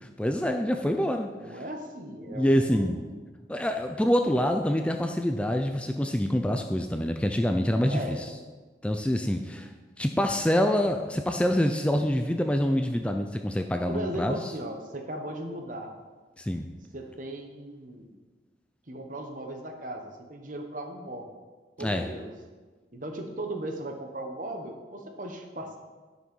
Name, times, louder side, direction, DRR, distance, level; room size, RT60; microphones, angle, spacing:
voice 1, 0.2-1.6 2.3-3.1 3.5-8.3 8.8-9.7 10.0-14.4 16.4-16.7 21.8-22.1, equal, 5° left, 5 dB, 0.4 m, -26 dB
voice 2, 1.4-3.0 7.8-8.2 13.9-15.9 16.9-18.1 18.9-21.3 21.8-22.3 22.9-25.8, right 1 dB, 50° right, 4 dB, 1.1 m, -37 dB
9.9 x 6.1 x 5.4 m, 1.4 s
head